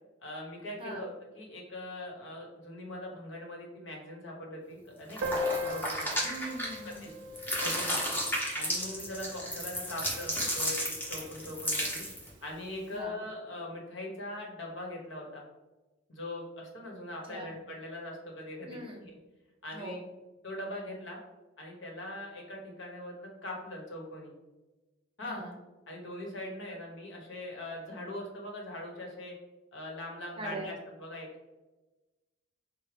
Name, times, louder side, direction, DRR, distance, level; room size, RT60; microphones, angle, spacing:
voice 1, 0.2-6.2 6.8-7.1 7.6-8.2 8.5-12.0 12.4-15.4 16.1-19.2 19.6-20.0 20.4-21.2 21.6-24.3 25.2-25.4 25.9-29.3 29.7-31.3, left 1 dB, 75° left, -1 dB, 1.1 m, -41 dB
sound 1, 5.1-7.0 7.4-12.3, equal, 10° left, 0.8 m, -33 dB
Piano, 5.2-10.6 10.8-10.9 11.1-11.3 11.6-11.7 12.5-12.7, left 2 dB, 65° right, 0.4 m, -39 dB
voice 2, 6.2-7.0 12.9-13.2 17.3-17.6 18.6-19.0 19.7-20.0 25.2-25.5 30.4-30.7, right 1 dB, 30° right, 1 dB, 0.6 m, -41 dB
4.6 x 2.2 x 3.3 m, 1.1 s
head